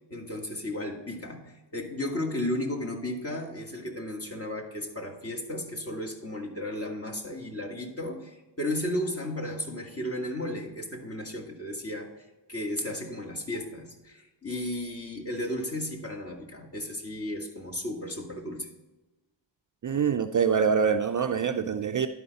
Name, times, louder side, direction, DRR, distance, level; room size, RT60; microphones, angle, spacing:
voice 1, 0.1-12.1 12.5-18.7, left 1 dB, 30° left, 1.9 m, -34 dB
voice 2, 19.8-22.1, right 6 dB, 45° right, 0.4 m, -25 dB
11.5 x 5.0 x 4.0 m
cardioid pair, 60°, 46 cm